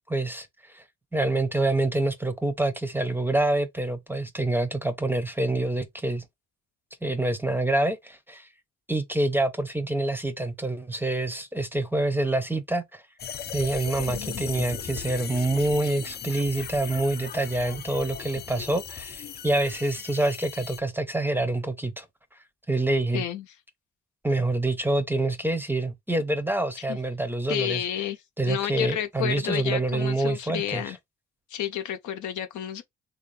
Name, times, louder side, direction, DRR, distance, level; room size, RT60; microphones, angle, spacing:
voice 1, 0.1-0.8 1.1-6.2 7.0-8.5 8.9-13.0 13.5-22.1 22.7-23.2 24.2-27.8 28.4-30.8, right 2 dB, 5° right, 0.6 m, -26 dB
sound 1, 13.2-20.8, left 8 dB, 35° left, 0.4 m, -37 dB
voice 2, 14.1-14.4 23.1-23.5 26.9-27.0 27.5-28.2 28.4-31.0 31.5-32.8, left 10 dB, 75° left, 0.7 m, -31 dB
3.3 x 2.6 x 3.2 m
cardioid pair, 90°, 30 cm